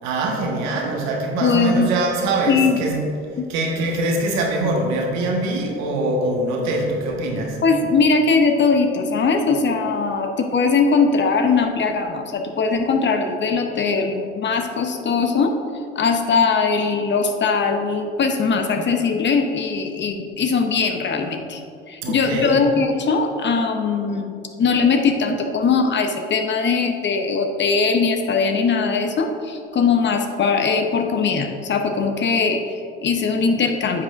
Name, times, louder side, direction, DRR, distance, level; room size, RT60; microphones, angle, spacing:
voice 1, 0.0-3.0 3.5-7.6 22.0-22.6, right 2 dB, 70° right, 1 dB, 1.4 m, -23 dB
voice 2, 1.4-1.9 2.5-3.0 3.4-3.5 7.6-15.6 15.9-21.6 21.9-34.0, left 4 dB, 40° left, 5 dB, 0.9 m, -20 dB
9.8 x 6.1 x 2.6 m, 2.6 s
hypercardioid pair, 60°, 29 cm